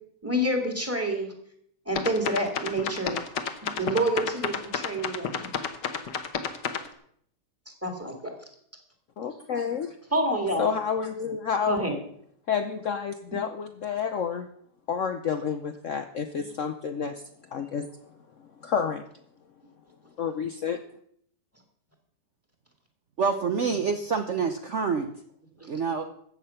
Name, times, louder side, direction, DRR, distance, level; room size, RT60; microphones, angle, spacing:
voice 1, 0.2-1.3 1.9-3.2 3.6-5.5 7.8-8.3 10.1-10.7 11.7-11.9, right 1 dB, 10° right, 3 dB, 2.1 m, -28 dB
sound 1, 2.0-6.9, left 7 dB, 80° left, 1.7 m, -30 dB
voice 2, 9.2-10.0 10.6-11.9 12.5-14.5 14.9-17.2 17.5-17.9 18.6-19.0 20.2-20.8, left 7 dB, 60° left, 7 dB, 0.9 m, -29 dB
voice 3, 23.2-25.1 25.7-26.0, right 5 dB, 50° right, 6 dB, 1.0 m, -27 dB
14.0 x 8.4 x 5.7 m, 0.66 s
omnidirectional pair, 1.9 m